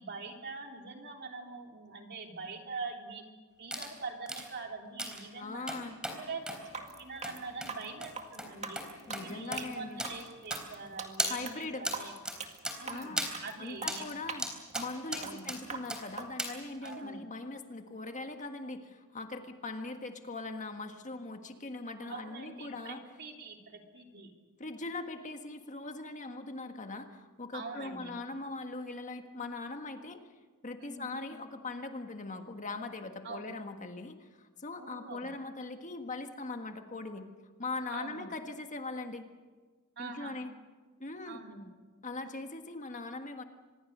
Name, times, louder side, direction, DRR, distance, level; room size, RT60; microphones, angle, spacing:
voice 1, 0.0-3.2 3.6-5.7 6.2-6.4 6.8-8.8 9.1-12.1 12.8-14.1 15.2-15.5 16.8-17.2 22.1-24.3 27.5-28.1 30.8-31.2 33.2-33.5 34.8-35.3 37.9-38.3 40.0-40.4 41.3-41.7, right 4 dB, 50° right, 2 dB, 3.3 m, -44 dB
sound 1, 3.7-3.9 4.3-4.5 5.0-5.2 5.7-6.2 6.5-6.6 7.2-7.3 7.6-7.7 8.0-8.1 8.4-8.5 8.8-8.9 9.1-9.2 9.5-9.6 10.0-10.1 10.5-10.9 11.2-11.3 11.8-12.0 12.2-12.4 12.6-12.8 13.2-13.3 13.9-14.0 14.4-14.9 15.1-15.6 15.9-16.0 16.4-16.5 16.8-17.0, right 1 dB, 5° right, 3.7 m, -35 dB
voice 2, 5.3-6.0 9.1-10.0 11.3-11.9 12.8-13.3 13.6-14.5 14.7-23.0 24.6-30.2 30.6-37.3 37.6-39.3 40.0-40.5 41.0-41.4 42.0-43.4, left 3 dB, 35° left, 6 dB, 1.5 m, -41 dB
sound 2, 6.6-16.3, right 5 dB, 30° right, 2.1 m, -43 dB
25.5 x 21.0 x 6.7 m, 1.4 s
head